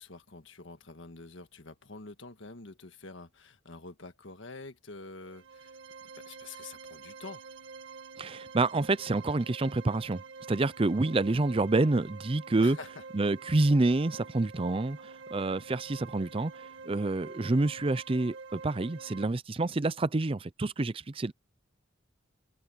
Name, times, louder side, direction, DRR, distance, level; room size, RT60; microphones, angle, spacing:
voice 1, 0.0-5.8 6.1-7.4 12.6-13.0, left 3 dB, 70° left, 1.6 m, -47 dB
sound 1, 5.2-19.3, right 5 dB, 65° right, 2.3 m, -47 dB
voice 2, 8.2-12.8 13.1-21.3, right 2 dB, 25° right, 0.5 m, -28 dB
head